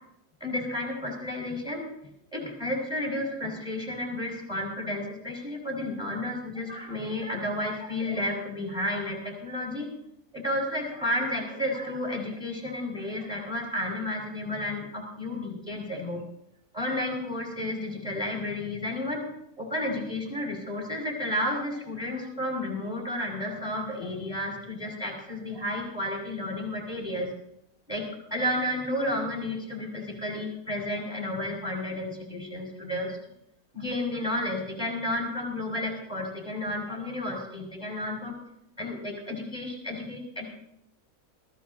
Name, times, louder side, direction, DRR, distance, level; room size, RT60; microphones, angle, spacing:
voice 1, 0.4-1.9 2.3-9.9 10.3-16.2 16.7-19.2 19.6-27.3 27.9-33.2 33.7-38.3 38.8-40.4, left 1 dB, 5° right, -1 dB, 4.7 m, -32 dB
22.5 x 14.5 x 2.7 m, 0.75 s
omnidirectional pair, 1.7 m